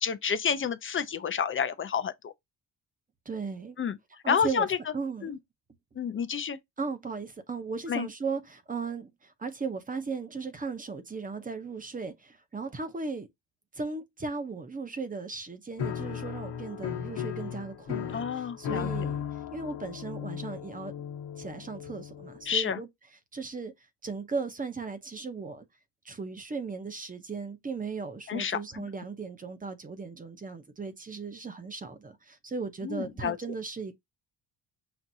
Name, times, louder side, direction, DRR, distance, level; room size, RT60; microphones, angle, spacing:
voice 1, 0.0-2.3 3.8-4.0 4.3-4.7 5.2-5.4 6.0-6.6 7.9-8.1 18.1-18.9 22.5-22.8 28.3-28.6 32.8-33.4, left 7 dB, 30° left, 0.4 m, -29 dB
voice 2, 3.3-3.8 4.2-4.7 4.9-5.3 6.8-13.3 13.7-19.2 19.5-20.9 21.4-22.9 23.3-23.7 24.0-25.7 26.0-34.0, right 4 dB, 20° right, 0.7 m, -36 dB
Piano, 15.8-22.6, left 8 dB, 60° left, 1.0 m, -36 dB
6.0 x 2.5 x 2.6 m
cardioid pair, 140°, 43 cm